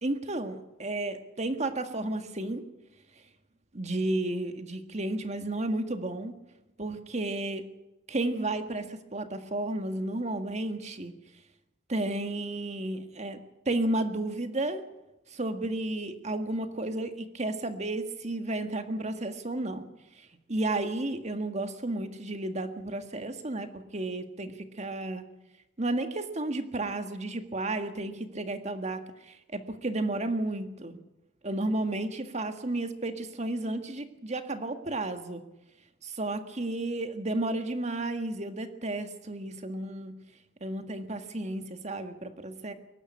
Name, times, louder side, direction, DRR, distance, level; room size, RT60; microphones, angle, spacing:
voice 1, 0.0-2.6 3.7-6.4 6.8-7.6 8.1-11.1 11.9-13.4 13.7-14.8 15.3-19.9 20.2-25.2 25.8-31.0 31.4-35.4 36.0-40.1 40.6-42.7, right 2 dB, 40° right, 8 dB, 1.7 m, -32 dB
22.5 x 12.0 x 9.9 m, 0.96 s
head